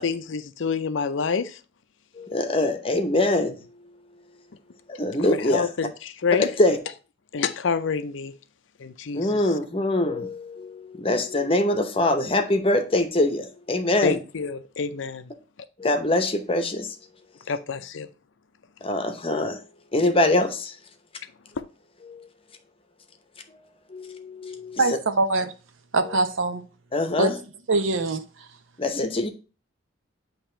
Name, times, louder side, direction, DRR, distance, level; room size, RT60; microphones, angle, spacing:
voice 1, 0.0-1.6 5.4-6.5 7.3-8.3 8.8-9.5 14.0-15.3 17.5-18.1, left 5 dB, 65° left, 0.5 m, -27 dB
voice 2, 2.2-3.6 5.0-5.7 6.4-6.8 9.1-14.2 15.8-17.0 18.8-19.6 19.9-20.7 22.1-22.3 23.5-25.0 26.9-27.4 28.8-29.3, left 1 dB, 25° left, 0.8 m, -24 dB
voice 3, 24.8-25.5 25.9-26.6 27.2-27.3 27.7-28.2, right 3 dB, 75° right, 0.8 m, -23 dB
8.7 x 3.0 x 4.4 m
head